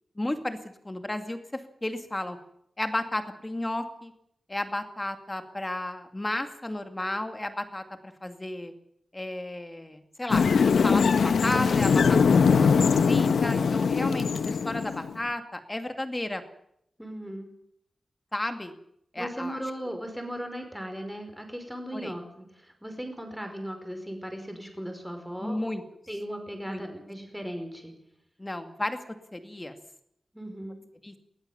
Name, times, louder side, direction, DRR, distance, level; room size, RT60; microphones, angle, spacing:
voice 1, 0.2-2.4 2.8-4.1 4.5-8.7 9.1-10.4 10.8-12.7 13.0-16.4 18.3-18.7 19.1-19.6 21.9-22.1 25.4-25.8 26.7-26.8 28.4-29.0 29.3-29.8 31.0-31.1, left 1 dB, 15° left, 7 dB, 2.4 m, -33 dB
sound 1, 10.3-15.2, left 5 dB, 90° left, 1.0 m, -22 dB
voice 2, 17.0-17.5 19.2-25.7 26.1-27.9 30.3-30.8, equal, ahead, 5 dB, 5.1 m, -37 dB
20.0 x 19.5 x 7.3 m, 0.74 s
wide cardioid pair, 140°, 0 cm